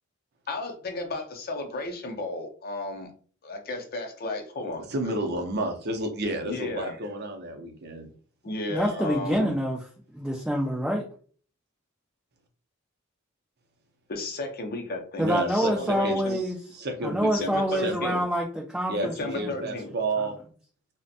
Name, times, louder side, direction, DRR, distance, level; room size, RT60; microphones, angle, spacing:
voice 1, 0.5-3.1 3.4-5.1 6.5-6.9 8.4-9.5 14.1-16.4 17.3-18.2 19.2-19.9, left 2 dB, 45° left, 4 dB, 0.5 m, -34 dB
voice 2, 4.9-8.1 15.2-16.4 16.7-18.2 18.9-20.4, right 1 dB, 50° right, 4 dB, 0.5 m, -31 dB
voice 3, 8.7-9.8 10.1-11.0 15.2-16.6 17.0-19.5, equal, 5° right, -1 dB, 0.3 m, -26 dB
2.5 x 2.1 x 2.6 m, 0.43 s
head